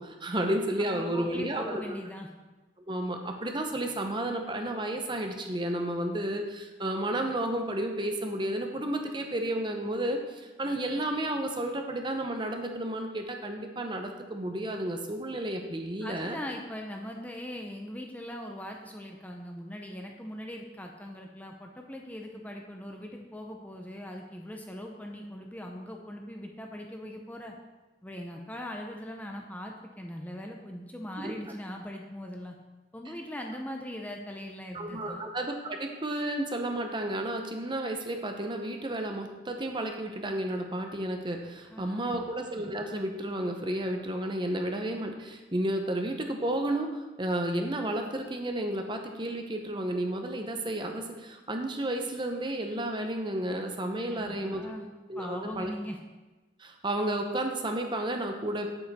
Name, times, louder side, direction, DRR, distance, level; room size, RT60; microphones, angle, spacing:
voice 1, 0.0-2.0 2.9-16.4 31.2-31.3 34.7-54.7 55.1-55.7 56.6-58.7, right 1 dB, 25° right, 4 dB, 0.8 m, -32 dB
voice 2, 0.8-2.3 16.0-27.5 28.0-32.5 32.9-35.2 41.7-42.3 54.1-54.9 55.2-56.0, equal, 10° left, 1 dB, 0.6 m, -40 dB
7.9 x 7.5 x 4.2 m, 1.2 s
head